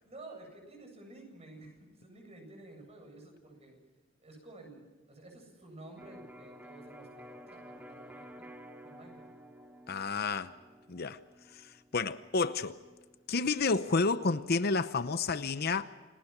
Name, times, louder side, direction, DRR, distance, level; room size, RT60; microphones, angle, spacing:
voice 1, 0.0-3.8 4.2-8.3 8.8-9.3, right 2 dB, 30° right, 7.8 m, -52 dB
Electric guitar, 6.0-13.7, equal, 10° right, 2.1 m, -53 dB
voice 2, 9.9-10.5 10.9-11.2 11.5-12.8 13.3-15.9, left 4 dB, 50° left, 0.8 m, -30 dB
28.5 x 19.0 x 6.0 m
head